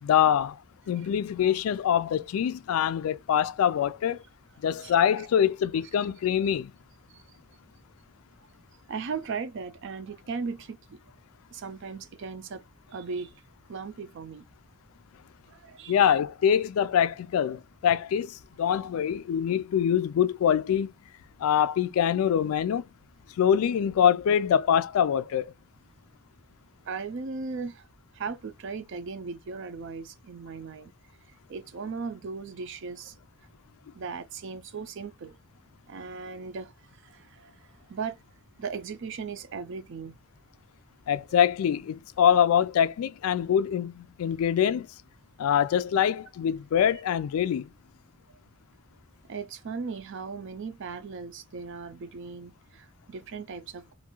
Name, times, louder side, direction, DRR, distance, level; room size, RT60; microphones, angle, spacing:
voice 1, 0.0-0.6 0.9-4.2 4.6-6.7 15.9-20.9 21.4-22.8 23.4-25.5 41.1-44.9 45.4-47.7, left 9 dB, 85° left, 0.3 m, -24 dB
voice 2, 8.9-11.0 11.5-12.6 12.9-13.3 13.7-14.4 15.5-16.2 26.9-27.9 28.1-30.9 31.5-33.2 33.9-35.4 35.9-36.7 37.0-37.5 37.9-38.2 38.6-40.1 49.3-53.9, right 5 dB, 60° right, 0.4 m, -37 dB
2.6 x 2.4 x 2.9 m
head